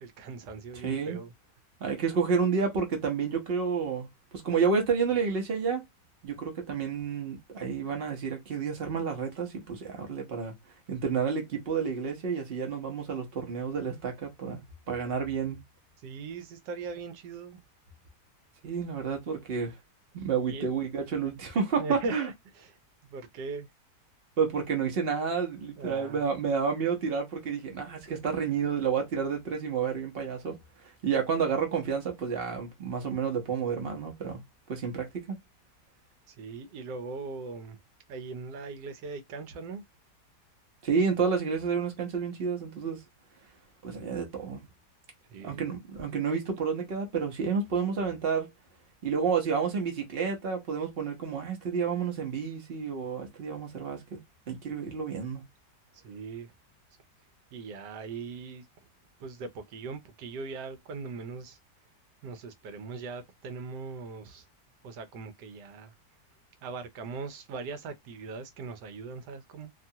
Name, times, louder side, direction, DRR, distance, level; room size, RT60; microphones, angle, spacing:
voice 1, 0.0-1.3 16.0-17.6 20.5-20.7 21.8-23.7 25.8-26.2 36.3-37.8 38.1-39.8 45.3-45.6 55.9-56.5 57.5-58.6 59.2-61.6 62.2-64.4 64.8-65.9 66.6-69.7, right 4 dB, 80° right, 1.2 m, -40 dB
voice 2, 0.7-1.2 1.8-5.8 6.2-10.5 10.9-15.6 18.6-19.7 20.1-22.3 24.4-30.6 30.8-34.4 34.7-35.4 40.8-43.0 43.8-44.6 45.4-48.5 49.0-54.2 54.5-55.4, right 6 dB, 45° right, 0.8 m, -30 dB
3.0 x 2.3 x 2.7 m
omnidirectional pair, 1.8 m